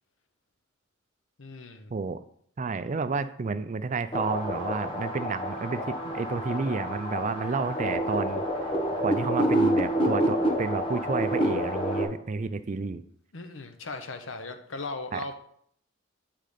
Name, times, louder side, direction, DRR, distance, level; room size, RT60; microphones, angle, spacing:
voice 1, 1.4-1.9 13.3-15.3, left 3 dB, 75° left, 8 dB, 0.9 m, -38 dB
voice 2, 1.9-2.2 2.6-8.4 9.0-13.0 15.1-15.2, right 4 dB, 40° right, 13 dB, 0.4 m, -30 dB
sound 1, 4.1-12.0, equal, 25° left, 1.1 m, -28 dB
8.5 x 3.8 x 5.0 m, 0.64 s
head